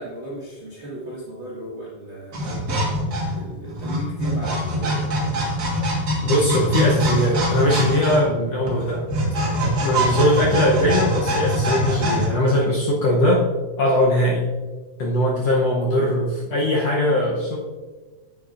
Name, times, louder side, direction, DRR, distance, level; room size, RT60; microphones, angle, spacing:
voice 1, 0.0-2.6 3.3-5.4 11.2-11.4 17.1-17.3, equal, 85° right, -7 dB, 0.6 m, -36 dB
sound 1, 2.3-12.3, right 1 dB, 50° right, 1.1 m, -23 dB
voice 2, 6.2-9.1 9.8-13.4 13.8-14.4 15.0-17.6, left 1 dB, 75° left, -2 dB, 1.5 m, -20 dB
9.1 x 8.4 x 2.5 m, 1.3 s
omnidirectional pair, 4.0 m